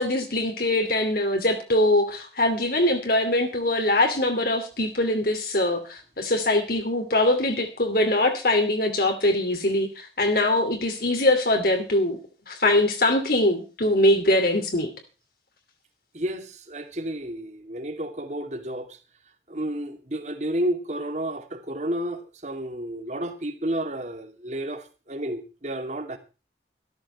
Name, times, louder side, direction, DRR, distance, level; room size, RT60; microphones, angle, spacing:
voice 1, 0.0-12.2 12.5-14.9, left 1 dB, 55° left, 2.7 m, -22 dB
voice 2, 16.1-19.0 19.5-26.2, right 1 dB, 40° right, 2.5 m, -31 dB
14.0 x 13.5 x 4.3 m
head